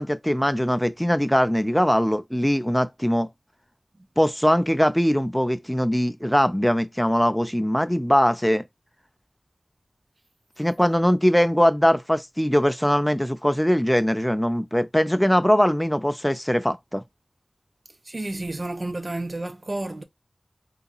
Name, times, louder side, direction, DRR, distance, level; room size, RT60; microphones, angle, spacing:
voice 1, 0.0-3.3 4.2-8.6 10.6-17.0, equal, 5° left, 0.5 m, -21 dB
voice 2, 18.1-20.0, right 2 dB, 55° right, 0.7 m, -31 dB
3.9 x 2.8 x 2.3 m
wide cardioid pair, 55°, 0 cm